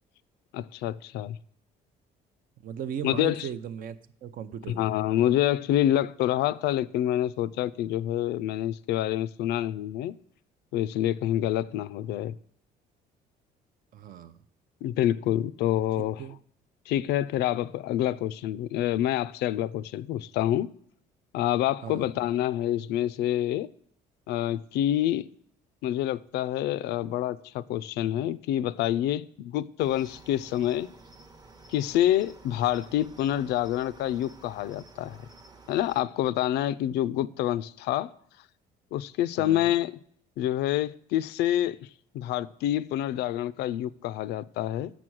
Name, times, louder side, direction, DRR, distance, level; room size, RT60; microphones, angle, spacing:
voice 1, 0.5-1.4 3.0-3.5 4.8-10.1 10.7-12.3 14.8-16.2 16.9-20.7 21.3-23.7 24.3-25.2 25.8-30.9 31.7-35.2 35.7-38.1 38.9-39.9 40.4-41.8 42.1-44.9, left 12 dB, 80° left, 0.4 m, -27 dB
voice 2, 2.6-4.9 13.9-14.4 16.2-16.4 21.8-22.1 39.4-39.7, right 9 dB, 55° right, 0.6 m, -37 dB
Cricket, 29.8-36.0, right 3 dB, 25° right, 0.8 m, -52 dB
7.1 x 6.0 x 6.2 m
cardioid pair, 110°, 17 cm